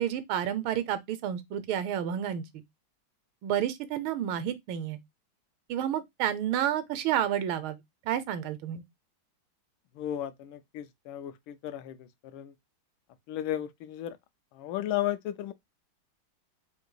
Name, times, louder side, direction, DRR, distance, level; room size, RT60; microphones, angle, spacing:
voice 1, 0.0-2.6 3.4-5.0 5.7-7.8 8.0-8.8, right 10 dB, 80° right, 1.4 m, -30 dB
voice 2, 9.9-12.5 13.3-14.2 14.5-15.5, left 12 dB, 80° left, 1.4 m, -34 dB
3.8 x 2.6 x 3.8 m
omnidirectional pair, 2.2 m